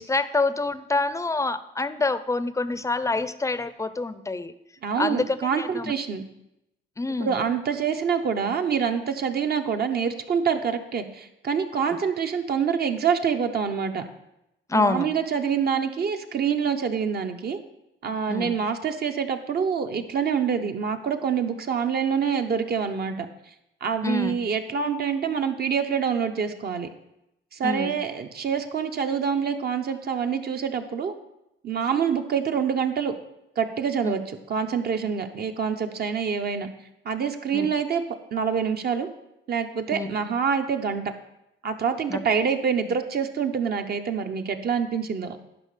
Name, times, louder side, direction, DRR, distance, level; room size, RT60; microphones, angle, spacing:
voice 1, 0.0-4.5 5.0-5.9 7.0-7.4 14.7-15.1 18.3-18.5 24.0-24.4 27.6-28.0 34.0-34.1 37.5-37.7 39.9-40.1 42.1-42.2, left 3 dB, 15° left, 13 dB, 0.5 m, -26 dB
voice 2, 4.8-6.2 7.2-14.0 14.7-17.6 18.0-23.3 23.8-26.9 27.5-31.1 31.6-33.1 33.6-36.7 37.0-38.0 38.3-39.1 39.5-41.0 41.6-45.4, right 6 dB, 50° right, 6 dB, 0.9 m, -26 dB
11.0 x 5.2 x 4.9 m, 0.87 s
cardioid pair, 90°, 20 cm